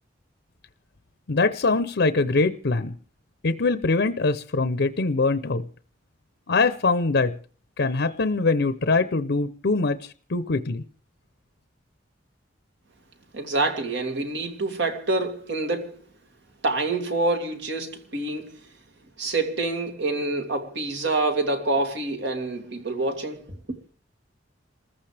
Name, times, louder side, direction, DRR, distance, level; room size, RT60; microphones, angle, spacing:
voice 1, 1.3-2.9 3.4-5.6 6.5-7.3 7.8-10.8, left 3 dB, 65° left, 0.7 m, -23 dB
voice 2, 13.3-16.0 16.6-18.6 19.2-23.4, right 2 dB, 65° right, 2.6 m, -26 dB
28.5 x 14.5 x 3.4 m
head